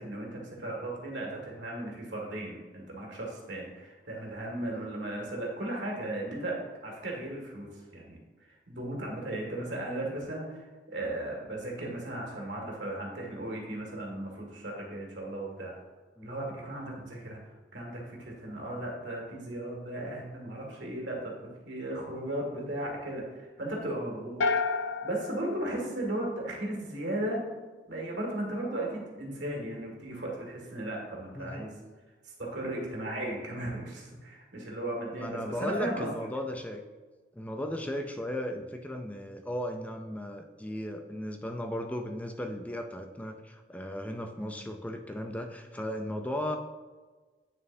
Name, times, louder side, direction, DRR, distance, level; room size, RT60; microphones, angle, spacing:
voice 1, 0.0-8.2 8.7-15.7 16.2-17.4 17.7-21.3 21.7-24.4 25.0-27.4 27.9-31.8 32.2-36.1 44.4-44.5, right 1 dB, 70° right, -1 dB, 2.0 m, -36 dB
sound 1, 24.4-26.7, left 4 dB, 80° left, 0.4 m, -31 dB
voice 2, 31.4-31.7 35.1-36.8 37.3-46.6, left 1 dB, 10° left, 5 dB, 0.4 m, -36 dB
9.0 x 6.5 x 2.7 m, 1.3 s
head